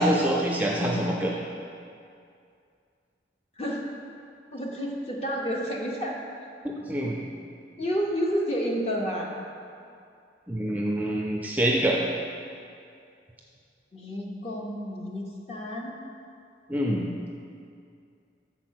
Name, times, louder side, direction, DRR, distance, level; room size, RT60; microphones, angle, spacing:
voice 1, 0.0-1.3 6.9-7.2 10.5-12.0 16.7-17.1, right 1 dB, 10° right, -2 dB, 0.4 m, -25 dB
voice 2, 4.5-6.2 7.8-9.3 13.9-16.0, equal, 35° left, -1 dB, 0.8 m, -30 dB
6.8 x 4.1 x 6.3 m, 2.4 s
head